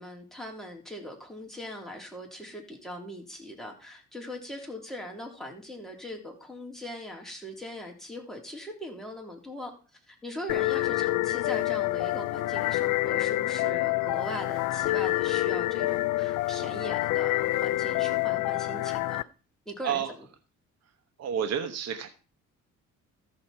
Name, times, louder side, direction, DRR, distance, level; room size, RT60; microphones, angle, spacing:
voice 1, 0.0-9.7 10.1-19.2 19.7-20.0, equal, ahead, 0 dB, 3.5 m, -40 dB
sound 1, 10.5-19.2, left 18 dB, 80° left, 0.5 m, -27 dB
voice 2, 21.2-22.1, right 8 dB, 60° right, 7 dB, 1.0 m, -30 dB
14.0 x 6.4 x 4.3 m, 0.36 s
cardioid pair, 90°, 30 cm